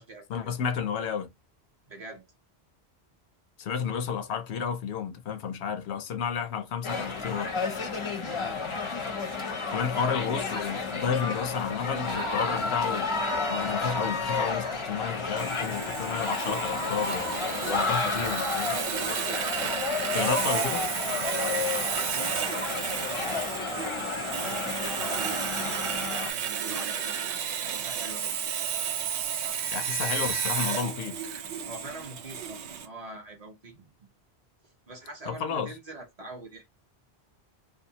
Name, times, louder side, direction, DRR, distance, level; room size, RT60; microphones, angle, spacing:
voice 1, 0.3-1.3 3.6-7.5 9.7-13.1 13.5-18.8 20.1-20.9 29.7-31.2 35.3-35.7, left 7 dB, 85° left, 0.9 m, -31 dB
voice 2, 1.9-2.3 7.6-7.9 8.2-8.6 9.9-10.2 17.5-18.6 19.0-19.5 21.3-24.0 24.4-27.1 27.6-28.3 31.7-33.9 34.9-36.6, right 2 dB, 45° right, 0.7 m, -44 dB
sound 1, 6.8-26.3, left 4 dB, 40° left, 0.5 m, -31 dB
Sawing, 15.4-32.9, right 8 dB, 90° right, 0.9 m, -32 dB
2.6 x 2.3 x 2.7 m
omnidirectional pair, 1.1 m